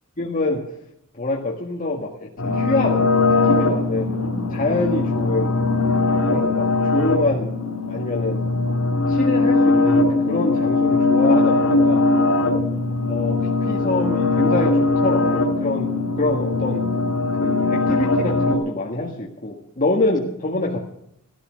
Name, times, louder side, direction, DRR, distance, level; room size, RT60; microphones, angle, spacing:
voice 1, 0.2-0.6 1.1-4.2 4.5-5.6 6.2-7.5 7.9-8.4 9.1-12.1 13.1-15.9 16.2-16.8 17.4-20.8, left 2 dB, 40° left, -2 dB, 1.8 m, -25 dB
sound 1, 2.4-18.5, left 3 dB, 85° left, 3.2 m, -20 dB
16.0 x 13.5 x 6.4 m, 0.75 s
head